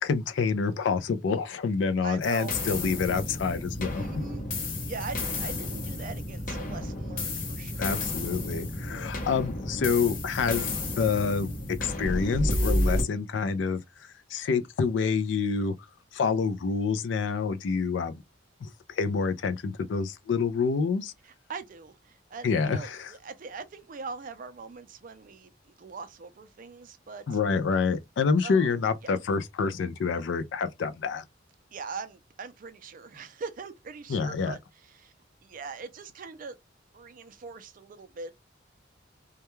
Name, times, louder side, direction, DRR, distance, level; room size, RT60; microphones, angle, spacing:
voice 1, 0.0-4.1 7.8-13.8 14.3-15.7 16.1-18.1 18.6-21.1 22.4-23.1 27.3-31.2 34.1-34.5, left 5 dB, 70° left, 0.4 m, -27 dB
voice 2, 2.0-2.6 4.0-4.4 4.9-8.1 21.2-27.2 28.4-28.8 31.7-35.1 35.4-36.6 36.9-38.3, right 4 dB, 45° right, 0.4 m, -41 dB
sound 1, 2.2-13.0, left 1 dB, 45° left, 0.7 m, -31 dB
2.2 x 2.2 x 3.0 m
head